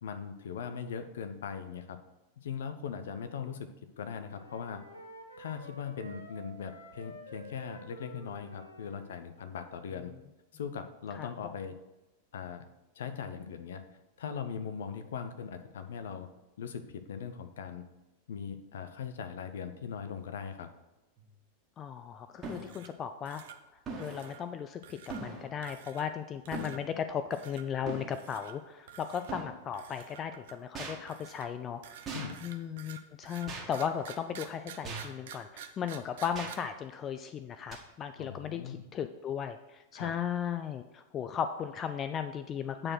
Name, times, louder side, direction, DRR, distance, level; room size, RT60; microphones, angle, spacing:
voice 1, 0.0-2.0 2.4-3.7 4.0-4.8 5.4-10.1 10.5-11.7 12.3-12.7 13.0-13.8 14.2-16.3 16.6-17.8 18.3-20.7 32.1-32.4 38.2-38.9 39.9-40.1, left 7 dB, 60° left, 9 dB, 0.7 m, -40 dB
Wind instrument woodwind instrument, 3.9-9.2, equal, 85° left, 1.1 m, -50 dB
voice 2, 11.2-11.5 21.8-23.4 24.0-32.0 32.4-42.9, left 8 dB, 30° left, 9 dB, 0.4 m, -36 dB
sound 1, 21.2-21.3 22.4-22.7 23.9-24.4 25.1-25.5 26.5-26.8 27.9-28.1 29.3-29.5 30.8-31.0 32.1-32.3 33.5-33.7 34.8-35.2 36.4-36.5 37.7-37.8, right 3 dB, 25° right, 1.7 m, -40 dB
sound 2, 22.4-23.0 23.3-23.6 24.0-24.4 24.8-25.2 25.6-26.2 26.5-26.8 27.3-27.6 28.1-28.5 28.9-29.3 29.7-30.7 31.1-36.5, right 9 dB, 55° right, 0.7 m, -49 dB
8.7 x 4.4 x 6.0 m, 1.0 s
figure-of-eight pair, 90°, 0 cm